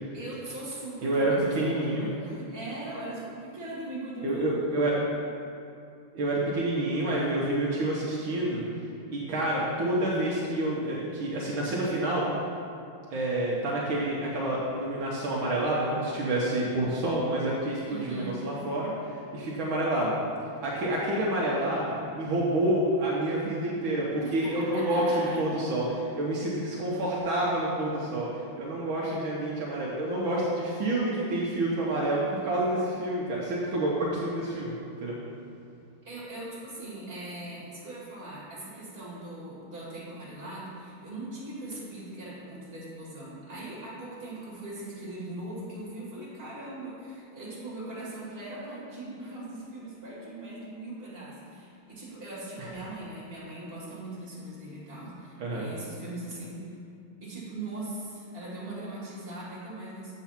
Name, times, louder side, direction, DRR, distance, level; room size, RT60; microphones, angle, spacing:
voice 1, 0.1-4.6 17.9-18.4 24.2-25.4 36.0-56.7 57.2-60.1, right 2 dB, 25° right, -7 dB, 2.2 m, -40 dB
voice 2, 1.0-2.1 4.2-5.0 6.1-8.6 9.1-12.3 13.1-20.1 20.6-34.7 35.0-35.2 52.6-52.7 55.4-55.6, right 1 dB, 70° right, -5 dB, 1.7 m, -28 dB
7.3 x 4.6 x 5.7 m, 2.5 s
omnidirectional pair, 2.3 m